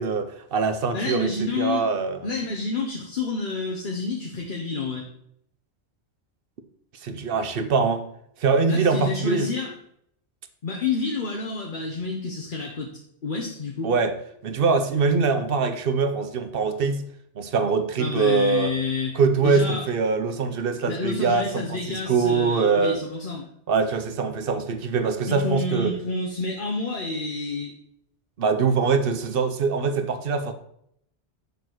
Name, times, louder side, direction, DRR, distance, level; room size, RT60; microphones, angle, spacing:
voice 1, 0.0-2.3 7.0-8.1 8.4-9.5 13.8-14.1 14.4-17.1 17.4-18.7 19.1-23.0 23.7-25.9 28.4-30.5, right 4 dB, 60° right, 0.9 m, -23 dB
voice 2, 0.9-1.8 2.2-5.1 8.7-9.7 10.6-12.9 13.2-13.9 18.0-19.2 19.4-19.8 20.8-23.4 25.3-27.7, left 3 dB, 50° left, 1.0 m, -29 dB
6.8 x 4.0 x 6.2 m
omnidirectional pair, 1.2 m